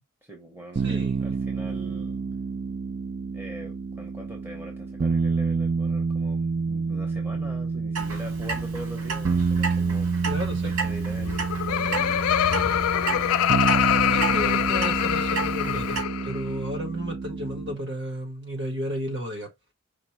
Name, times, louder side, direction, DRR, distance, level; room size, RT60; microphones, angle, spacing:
voice 1, 0.2-2.2 3.3-10.2 10.5-12.6, right 1 dB, 10° right, 0.8 m, -42 dB
sound 1, 0.8-17.8, right 5 dB, 35° right, 0.3 m, -28 dB
voice 2, 0.8-1.4 10.2-10.7 14.1-19.5, equal, 50° right, 1.5 m, -33 dB
Clock, 7.9-16.0, right 3 dB, 90° right, 1.9 m, -34 dB
Laughter, 11.2-16.4, left 10 dB, 85° left, 0.3 m, -24 dB
5.1 x 2.0 x 4.5 m
head